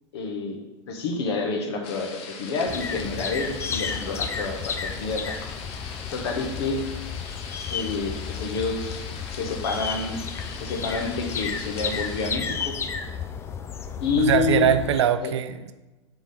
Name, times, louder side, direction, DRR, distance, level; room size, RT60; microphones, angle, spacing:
voice 1, 0.1-0.6 0.9-5.4 6.1-6.8 7.7-10.2 10.6-12.8 14.0-14.7 15.2-15.3, left 4 dB, 55° left, 3 dB, 1.2 m, -28 dB
sound 1, 1.8-12.3, left 5 dB, 40° left, 0.7 m, -41 dB
sound 2, 2.7-15.0, left 6 dB, 15° left, 0.4 m, -33 dB
voice 2, 14.2-15.7, right 9 dB, 65° right, 10 dB, 0.5 m, -22 dB
4.7 x 3.9 x 5.7 m, 1.1 s
figure-of-eight pair, 95°, 16 cm